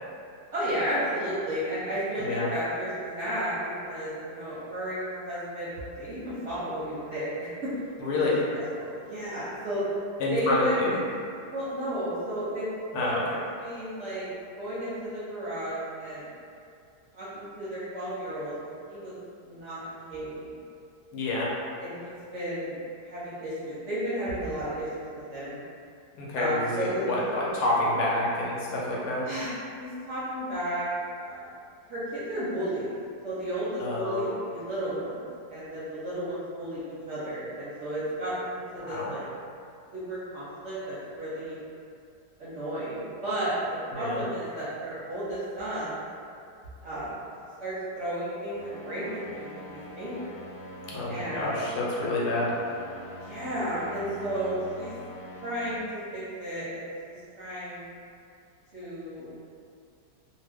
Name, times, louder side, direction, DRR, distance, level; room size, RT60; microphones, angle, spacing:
voice 1, 0.5-7.7 8.5-9.9 10.3-10.8 11.5-12.7 13.0-13.2 13.5-14.3 14.6-16.3 17.1-18.5 18.9-19.1 19.4-20.5 21.3-21.4 21.8-25.6 26.3-27.0 27.4-27.5 29.2-30.9 31.2-31.5 31.8-32.9 33.2-39.2 39.9-41.6 42.4-43.5 43.9-46.0 46.8-47.2 47.6-50.3 51.1-51.6 53.2-54.9 55.4-57.9 58.7-59.3, right 1 dB, 60° right, -11 dB, 0.8 m, -33 dB
voice 2, 8.0-8.4 10.2-11.0 12.9-13.4 21.1-21.5 26.2-29.3 33.8-34.3 38.9-39.1 43.9-44.2 50.9-52.5, left 2 dB, 75° left, -5 dB, 1.1 m, -28 dB
sound 1, 48.5-55.8, left 1 dB, 40° left, 0.9 m, -44 dB
2.8 x 2.1 x 3.4 m, 2.4 s
omnidirectional pair, 1.8 m